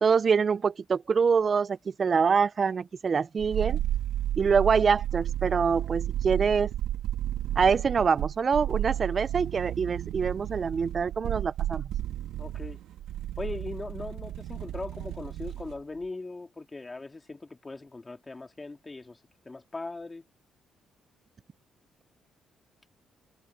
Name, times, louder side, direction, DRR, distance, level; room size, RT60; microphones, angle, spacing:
voice 1, 0.0-3.8 4.4-6.7 7.6-11.9, right 6 dB, 40° right, 0.4 m, -25 dB
sound 1, 3.4-15.8 16.0-16.1, right 12 dB, 90° right, 2.6 m, -32 dB
voice 2, 12.4-12.8 13.4-19.2 19.5-20.2, left 3 dB, 20° left, 3.6 m, -39 dB
cardioid pair, 90°, 0 cm